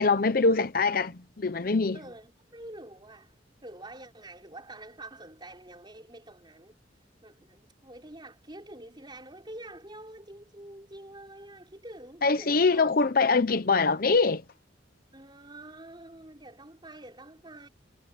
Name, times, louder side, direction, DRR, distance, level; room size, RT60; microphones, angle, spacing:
voice 1, 0.0-2.0 12.2-14.4, left 4 dB, 50° left, 0.8 m, -23 dB
voice 2, 1.9-3.4 3.6-6.8 7.2-13.0 15.1-17.7, right 1 dB, 25° right, 5.4 m, -47 dB
head